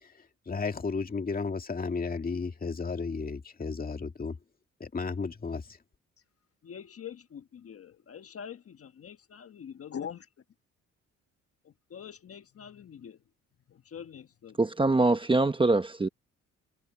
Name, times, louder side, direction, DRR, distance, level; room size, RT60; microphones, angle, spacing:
voice 1, 0.5-4.4 4.8-5.8, left 4 dB, 30° left, 2.3 m, -33 dB
voice 2, 6.6-10.3 11.9-13.2 13.7-14.6, left 8 dB, 50° left, 1.4 m, -44 dB
voice 3, 14.6-16.1, right 2 dB, 15° right, 1.1 m, -24 dB
cardioid pair, 90°, 30 cm